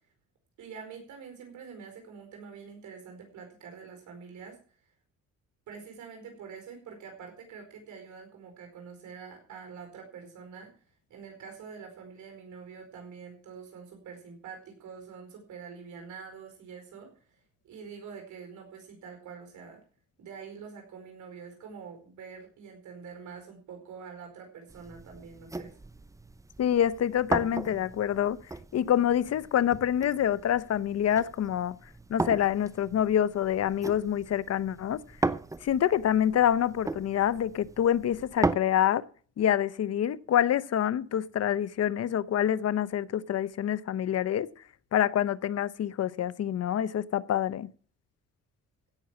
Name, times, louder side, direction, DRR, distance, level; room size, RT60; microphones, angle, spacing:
voice 1, 0.6-4.6 5.7-10.7 11.1-17.4 17.6-19.8 20.2-25.7, right 6 dB, 75° right, 4.7 m, -46 dB
sound 1, 24.7-38.6, right 2 dB, 10° right, 0.7 m, -37 dB
voice 2, 26.6-28.4 28.7-31.8 32.1-35.0 35.6-39.0 39.4-44.5 44.9-47.7, left 10 dB, 55° left, 0.8 m, -26 dB
16.5 x 6.3 x 7.3 m
cardioid pair, 90°, 30 cm